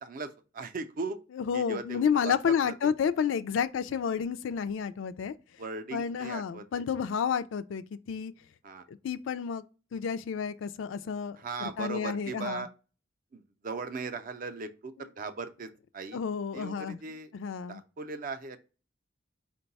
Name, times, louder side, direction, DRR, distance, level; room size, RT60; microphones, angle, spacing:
voice 1, 0.0-1.2 1.5-2.9 5.6-6.8 8.6-8.9 11.4-12.7 13.3-16.2 16.5-17.3 17.7-18.6, right 4 dB, 45° right, 0.5 m, -38 dB
voice 2, 1.4-5.3 5.9-8.3 8.9-9.6 9.9-12.7 16.1-17.0 17.3-17.8, left 7 dB, 80° left, 0.3 m, -30 dB
4.6 x 2.2 x 3.9 m
head